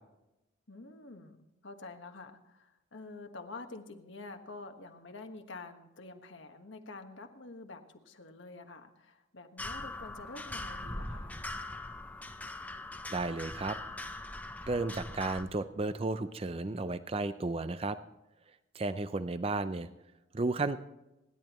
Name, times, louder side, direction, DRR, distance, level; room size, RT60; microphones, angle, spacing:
voice 1, 0.7-11.4, left 3 dB, 70° left, 5 dB, 1.4 m, -48 dB
sound 1, 9.6-15.4, left 2 dB, 10° left, 0.7 m, -41 dB
voice 2, 13.1-13.8 14.6-18.0 18.7-19.9 20.3-20.8, right 3 dB, 30° right, 12 dB, 0.5 m, -33 dB
27.5 x 11.0 x 3.1 m, 0.93 s
head